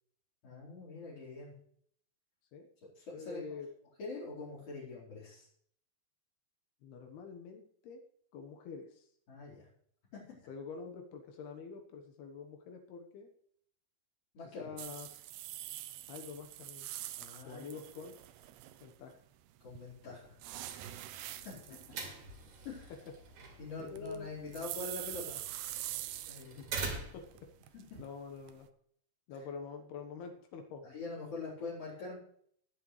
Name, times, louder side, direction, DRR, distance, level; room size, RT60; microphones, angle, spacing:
voice 1, 0.4-1.5 3.0-3.4 4.0-5.5 9.3-9.7 10.1-10.5 14.3-14.8 17.2-17.6 19.6-20.4 20.6-20.7 21.3-21.6 22.6-22.9 23.6-25.4 26.3-26.6 27.7-28.0 30.8-32.2, left 3 dB, 60° left, -6 dB, 6.1 m, -44 dB
voice 2, 3.1-3.7 6.8-8.0 8.3-9.1 10.5-13.3 14.6-15.2 16.1-17.1 17.4-18.2 18.8-19.2 23.8-24.3 26.6-27.5 28.0-28.7 29.3-30.9, left 5 dB, 80° left, 4 dB, 3.3 m, -46 dB
sound 1, 14.8-19.1 19.7-26.8 27.2-28.7, right 14 dB, 90° right, 2.7 m, -45 dB
sound 2, 20.4-27.4, right 4 dB, 70° right, 3.9 m, -45 dB
20.5 x 7.9 x 3.3 m, 0.63 s
omnidirectional pair, 4.5 m